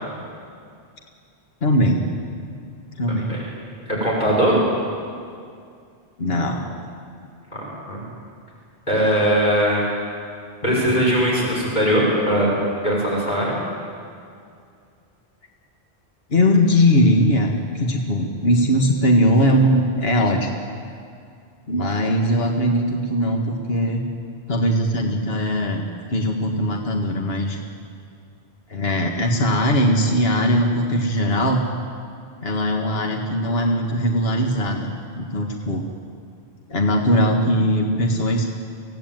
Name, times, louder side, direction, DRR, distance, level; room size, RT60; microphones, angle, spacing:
voice 1, 1.6-2.0 3.0-3.4 6.2-6.8 16.3-20.5 21.7-24.0 24.5-27.6 28.7-31.6 32.4-35.9 36.7-38.4, equal, 65° left, 1 dB, 2.0 m, -20 dB
voice 2, 3.1-3.4 3.9-4.6 7.5-8.0 8.9-9.8 10.6-12.5 12.8-13.5, equal, 45° left, -5 dB, 6.0 m, -20 dB
25.0 x 17.0 x 9.2 m, 2.4 s
omnidirectional pair, 1.1 m